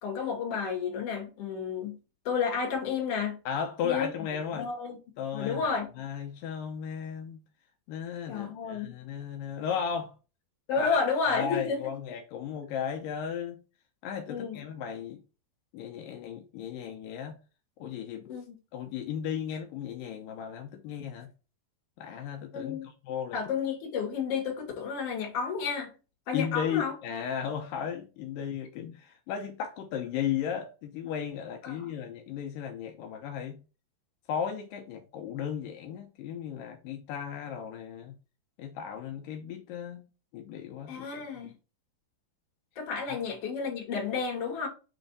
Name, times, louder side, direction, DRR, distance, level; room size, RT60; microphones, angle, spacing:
voice 1, 0.0-2.0 2.2-3.4 3.8-4.1 4.6-5.0 5.3-5.9 8.3-8.9 10.7-11.9 14.3-14.6 18.3-18.6 22.5-22.9 23.3-25.9 26.3-26.9 31.6-31.9 40.9-41.5 42.8-44.7, left 5 dB, 45° left, 2.3 m, -31 dB
voice 2, 3.5-4.7 5.2-7.4 7.9-10.1 10.8-13.6 14.0-15.2 15.7-17.4 17.8-18.3 18.7-21.3 22.0-23.4 26.3-33.6 34.3-38.2 38.6-40.1 40.3-41.1 43.1-43.2, left 8 dB, 85° left, 1.9 m, -35 dB
7.6 x 3.3 x 4.1 m
omnidirectional pair, 4.9 m